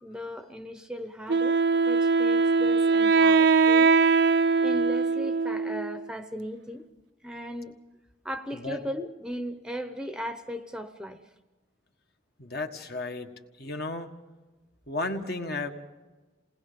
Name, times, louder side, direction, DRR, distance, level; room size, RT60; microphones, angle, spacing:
voice 1, 0.0-3.9 4.6-6.8 7.2-7.8 8.2-11.2, equal, 5° right, 7 dB, 0.8 m, -37 dB
Wind instrument woodwind instrument, 1.3-6.1, right 4 dB, 60° right, 0.6 m, -22 dB
voice 2, 12.4-13.3 13.6-14.1 14.9-15.7, left 2 dB, 55° left, 4 dB, 1.6 m, -33 dB
28.0 x 19.5 x 5.2 m, 1.2 s
head